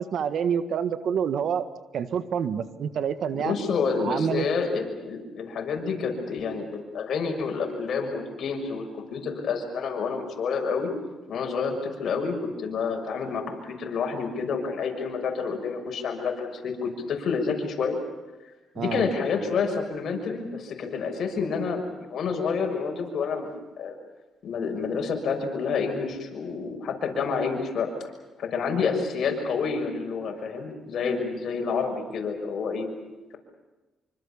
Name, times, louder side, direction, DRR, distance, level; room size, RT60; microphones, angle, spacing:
voice 1, 0.0-1.7 1.9-3.6 4.0-4.5 18.8-19.1, right 7 dB, 65° right, 11 dB, 1.6 m, -27 dB
voice 2, 3.3-10.9 11.3-18.0 18.8-23.5 23.8-23.9 24.4-28.1 28.4-32.9, left 5 dB, 65° left, 3 dB, 6.4 m, -29 dB
26.5 x 25.0 x 7.1 m, 1.1 s
cardioid pair, 90°, 0 cm